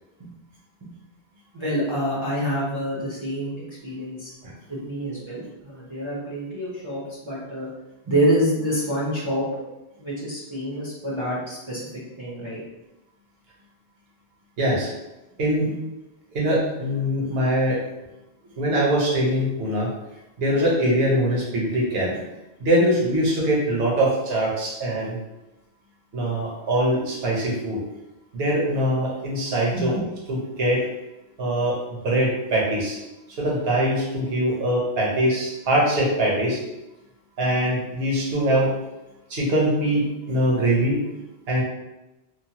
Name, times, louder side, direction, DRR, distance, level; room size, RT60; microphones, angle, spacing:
voice 1, 1.5-4.3 4.7-7.7 8.1-9.6 10.0-12.6 29.7-30.0, equal, 35° right, -8 dB, 0.6 m, -27 dB
voice 2, 14.6-14.9 15.4-15.7 16.3-17.8 18.6-19.9 20.4-22.2 22.6-25.2 26.1-27.8 28.3-29.9 30.3-30.9 31.4-33.0 33.4-36.6 37.4-38.7 39.3-41.0 41.5-41.6, right 1 dB, 65° right, -4 dB, 1.0 m, -22 dB
3.0 x 2.1 x 2.8 m, 0.97 s
omnidirectional pair, 1.1 m